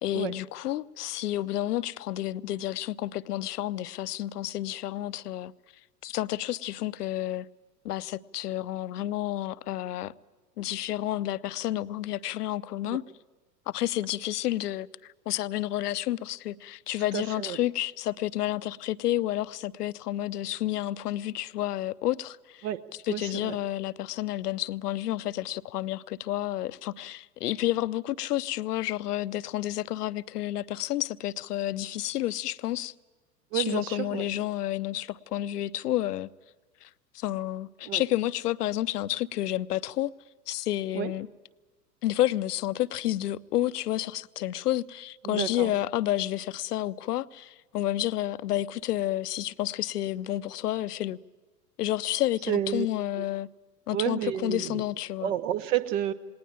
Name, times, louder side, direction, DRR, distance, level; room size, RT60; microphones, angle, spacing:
voice 1, 0.0-5.5 6.0-7.5 7.8-10.1 10.6-13.0 13.7-22.7 23.1-32.9 33.5-36.3 36.8-36.9 37.1-40.1 40.5-41.3 42.0-51.2 51.8-53.5 53.9-55.3, left 13 dB, 70° left, 0.7 m, -30 dB
voice 2, 17.1-17.6 22.6-22.8 23.1-23.6 33.5-34.2 37.8-38.0 40.9-41.1 45.2-45.7 52.5-52.9 53.2-53.3 53.9-54.8 55.2-56.1, right 11 dB, 50° right, 1.1 m, -30 dB
19.0 x 19.0 x 8.8 m
figure-of-eight pair, 95°, 48 cm